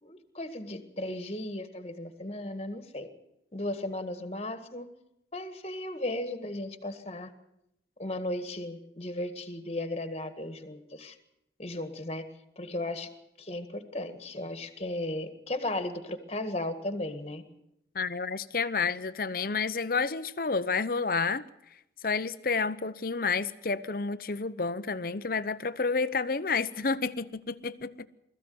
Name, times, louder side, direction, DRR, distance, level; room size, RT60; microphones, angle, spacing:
voice 1, 0.0-3.1 3.5-4.8 5.3-7.3 8.0-11.2 11.6-12.3 12.5-13.1 13.4-17.4, left 1 dB, 35° left, 1.8 m, -35 dB
voice 2, 17.9-21.4 22.0-28.1, left 4 dB, 55° left, 0.8 m, -30 dB
21.0 x 14.5 x 9.5 m
head